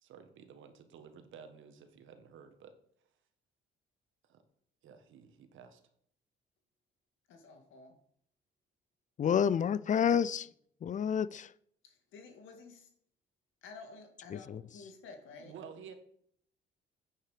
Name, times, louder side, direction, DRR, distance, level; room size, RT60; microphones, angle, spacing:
voice 1, 0.0-2.7 4.3-4.4 4.8-5.8 15.3-15.9, right 7 dB, 80° right, 1.5 m, -52 dB
voice 2, 7.3-8.0 10.0-10.4 11.8-12.9 13.6-15.5, left 4 dB, 85° left, 2.0 m, -52 dB
voice 3, 9.2-10.5 10.8-11.5 14.3-14.6, left 8 dB, 40° left, 0.5 m, -29 dB
9.0 x 8.8 x 5.0 m
cardioid pair, 90°, 20 cm